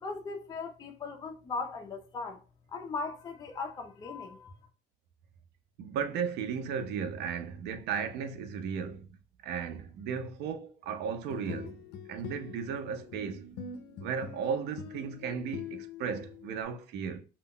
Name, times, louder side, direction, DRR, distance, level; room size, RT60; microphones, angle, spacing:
voice 1, 0.0-2.4 2.7-4.5, left 4 dB, 25° left, 0.4 m, -38 dB
voice 2, 5.8-9.1 9.4-11.8 12.1-13.5 14.0-17.2, right 6 dB, 80° right, 0.4 m, -35 dB
sound 1, 11.1-16.6, left 6 dB, 85° left, 0.4 m, -44 dB
2.2 x 2.0 x 3.5 m
cardioid pair, 110°, 17 cm